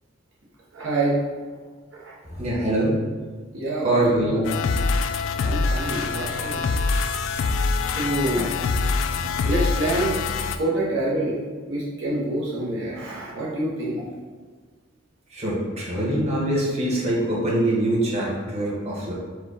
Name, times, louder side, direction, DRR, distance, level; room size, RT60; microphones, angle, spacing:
voice 1, 0.7-1.2 1.9-2.1 3.5-4.0 4.3-4.4 5.4-6.6 7.9-8.5 9.4-10.2 10.5-14.1, right 1 dB, 70° right, -5 dB, 0.9 m, -26 dB
voice 2, 2.2-3.0 3.8-4.4 9.1-9.3 15.3-19.1, right 1 dB, 35° right, -6 dB, 1.3 m, -24 dB
sound 1, 4.4-10.6, left 4 dB, 75° left, 0.3 m, -24 dB
4.8 x 2.3 x 4.7 m, 1.5 s
head